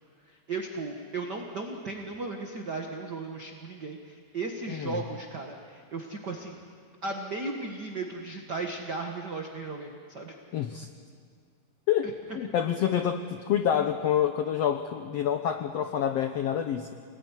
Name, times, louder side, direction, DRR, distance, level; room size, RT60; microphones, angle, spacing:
voice 1, 0.3-6.6 7.0-10.3, right 3 dB, 45° right, 2 dB, 1.5 m, -36 dB
voice 2, 4.7-5.0 10.5-10.9 11.9-16.9, left 9 dB, 80° left, 7 dB, 1.4 m, -27 dB
28.5 x 19.5 x 9.9 m, 2.1 s
omnidirectional pair, 4.2 m